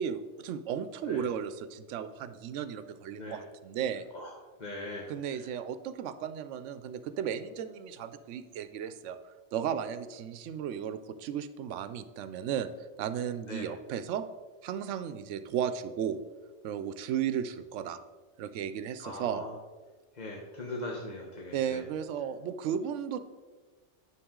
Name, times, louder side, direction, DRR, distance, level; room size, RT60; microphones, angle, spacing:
voice 1, 0.0-4.0 5.1-12.7 13.0-14.2 14.6-16.2 16.6-18.0 18.4-19.4 21.5-23.2, right 8 dB, 85° right, 12 dB, 0.9 m, -35 dB
voice 2, 4.6-5.0 5.3-5.4 13.5-13.7 19.0-19.5 20.1-21.8, left 2 dB, 40° left, -2 dB, 1.0 m, -40 dB
9.9 x 6.3 x 3.7 m, 1.3 s
omnidirectional pair, 1.2 m